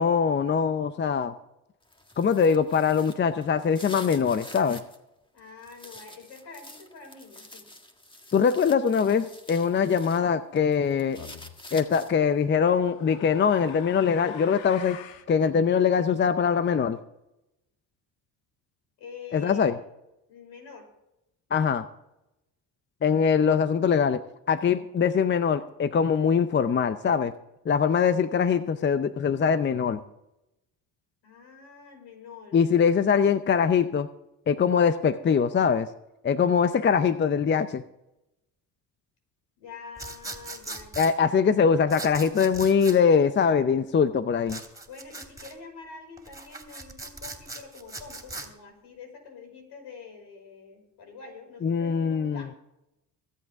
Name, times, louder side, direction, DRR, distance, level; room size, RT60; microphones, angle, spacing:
voice 1, 0.0-1.3 2.2-4.8 8.3-11.2 11.7-15.0 15.3-17.0 19.3-19.7 21.5-21.8 23.0-24.2 24.5-27.3 27.7-30.0 32.5-34.1 34.5-35.9 36.2-37.8 41.0-44.6 51.6-52.4, left 6 dB, 25° left, 12 dB, 0.6 m, -22 dB
sound 1, 1.8-5.0 5.4-10.2 10.6-12.3, left 1 dB, 10° left, 1.6 m, -47 dB
voice 2, 5.3-7.7 19.0-19.8 20.3-20.9 31.2-33.2 39.6-41.4 44.9-52.6, left 5 dB, 70° left, 3 dB, 5.5 m, -46 dB
sound 2, 11.2-11.5 12.6-15.3, left 9 dB, 85° left, 1.2 m, -44 dB
sound 3, 40.0-41.1 41.9-43.0 44.5-45.5 46.2-48.5, right 2 dB, 10° right, 2.8 m, -39 dB
24.0 x 8.3 x 3.6 m, 0.90 s
supercardioid pair, 90°, 43 cm